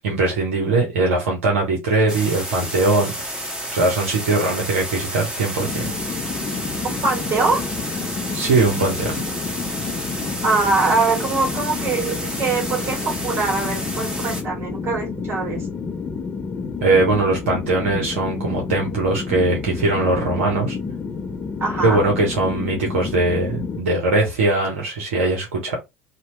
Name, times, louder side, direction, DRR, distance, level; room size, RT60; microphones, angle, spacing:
voice 1, 0.0-5.9 8.3-9.2 16.8-20.8 21.8-25.8, right 3 dB, 70° right, 0.8 m, -21 dB
sound 1, 2.1-14.4, right 1 dB, 10° right, 1.2 m, -31 dB
sound 2, 5.6-23.8, left 5 dB, 25° left, 0.5 m, -30 dB
voice 2, 6.8-7.6 10.4-15.7 21.6-22.0, right 3 dB, 35° right, 1.7 m, -23 dB
2.8 x 2.2 x 3.0 m
figure-of-eight pair, 65°, 7 cm